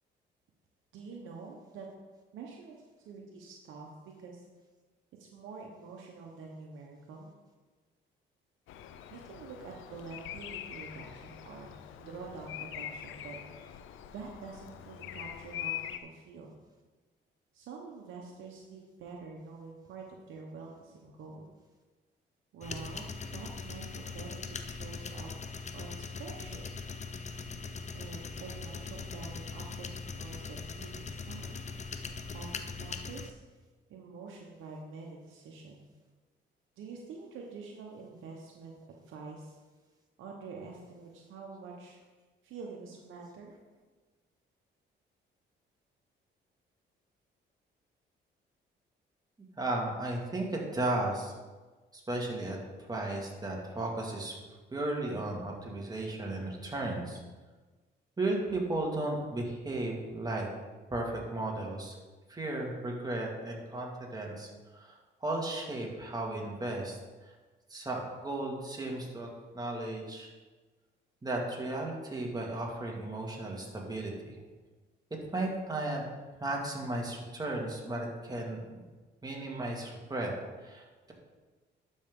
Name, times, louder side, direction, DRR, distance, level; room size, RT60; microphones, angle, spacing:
voice 1, 0.9-1.9 2.3-4.4 5.2-7.3 9.1-13.7 14.1-16.5 17.5-21.5 22.5-25.3 25.7-26.6 27.9-31.5 32.3-33.4 33.9-35.9 36.8-38.8 39.0-39.6 40.2-42.0 42.4-43.5, right 4 dB, 80° right, -1 dB, 1.0 m, -47 dB
Bird vocalization bird call bird song, 8.7-16.0, left 11 dB, 80° left, 0.6 m, -43 dB
sound 1, 22.6-33.3, left 5 dB, 35° left, 0.7 m, -41 dB
voice 2, 49.6-51.3 52.1-52.6 52.9-54.3 54.7-57.2 58.2-60.5 60.9-61.9 62.3-64.5 64.8-64.9 65.2-67.0 67.7-69.3 69.5-70.3 71.2-74.3 75.3-76.0 76.4-78.6 79.2-80.3 80.6-81.1, right 2 dB, 20° right, -1 dB, 2.1 m, -35 dB
11.5 x 5.5 x 3.7 m, 1.3 s
cardioid pair, 90°, 20 cm